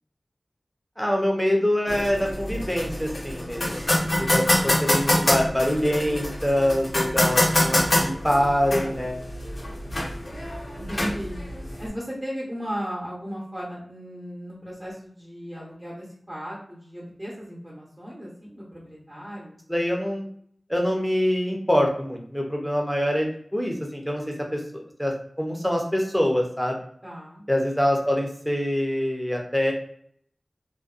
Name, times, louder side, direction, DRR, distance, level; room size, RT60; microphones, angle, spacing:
voice 1, 1.0-9.2 19.7-20.3 20.7-25.1 25.4-26.8 27.5-29.7, equal, 5° left, 0 dB, 0.6 m, -25 dB
sound 1, 1.9-11.9, left 1 dB, 70° left, 0.7 m, -25 dB
voice 2, 10.8-11.4 11.8-19.6 27.0-27.5, equal, 30° right, -6 dB, 0.8 m, -36 dB
2.5 x 2.2 x 2.4 m, 0.64 s
wide cardioid pair, 70°, 0 cm